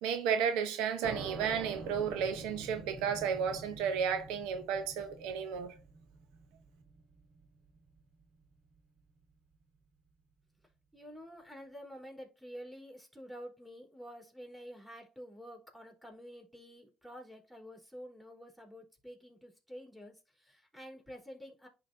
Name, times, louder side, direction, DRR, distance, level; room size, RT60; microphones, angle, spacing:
voice 1, 0.0-5.7, right 7 dB, 85° right, 0.8 m, -33 dB
sound 1, 1.0-8.4, right 3 dB, 60° right, 2.0 m, -47 dB
voice 2, 10.9-21.7, equal, ahead, 3.4 m, -49 dB
11.0 x 3.9 x 2.7 m
supercardioid pair, 80°, 0 cm